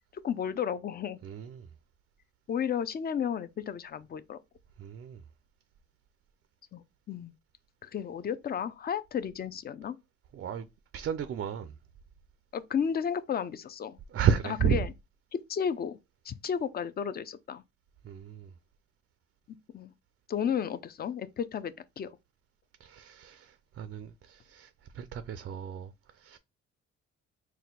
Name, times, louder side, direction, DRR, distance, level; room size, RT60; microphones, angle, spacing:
voice 1, 0.2-1.2 2.5-4.4 6.7-7.3 7.8-10.0 12.5-14.0 14.6-14.9 15.3-16.0 16.3-17.6 19.7-19.9 20.3-22.1, left 8 dB, 35° left, 0.4 m, -33 dB
voice 2, 1.2-1.7 4.8-5.2 10.3-10.7 10.9-11.7 14.1-14.8 18.0-18.5 22.8-26.4, right 8 dB, 45° right, 0.4 m, -32 dB
4.2 x 2.2 x 3.8 m
cardioid pair, 90°, 30 cm